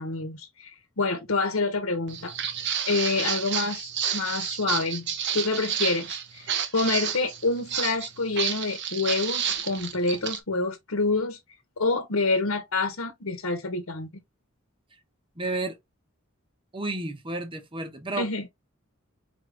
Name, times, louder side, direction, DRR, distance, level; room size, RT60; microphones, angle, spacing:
voice 1, 0.0-2.3 2.9-11.4 11.8-14.1 18.1-18.5, left 3 dB, 75° left, 1.1 m, -27 dB
Walk footsteps, 2.1-10.4, right 8 dB, 55° right, 0.9 m, -30 dB
voice 2, 15.4-15.8 16.7-18.3, right 2 dB, 25° right, 1.1 m, -31 dB
4.5 x 3.3 x 3.4 m
head